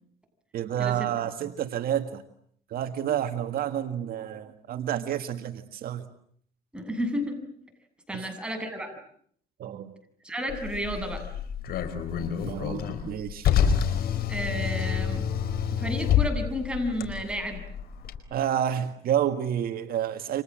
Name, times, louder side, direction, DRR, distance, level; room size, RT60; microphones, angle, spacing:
voice 1, 0.5-2.2 2.7-6.0 8.1-8.3 9.6-9.9 12.2-13.5 18.3-20.4, right 10 dB, 60° right, 7 dB, 1.9 m, -29 dB
voice 2, 6.7-7.4 8.1-8.9 10.2-11.2 14.3-15.2 15.7-17.6, equal, 5° right, 4 dB, 8.0 m, -31 dB
Car, 10.5-18.2, left 8 dB, 65° left, 4.7 m, -28 dB
29.5 x 26.5 x 7.7 m, 0.64 s
cardioid pair, 110°, 17 cm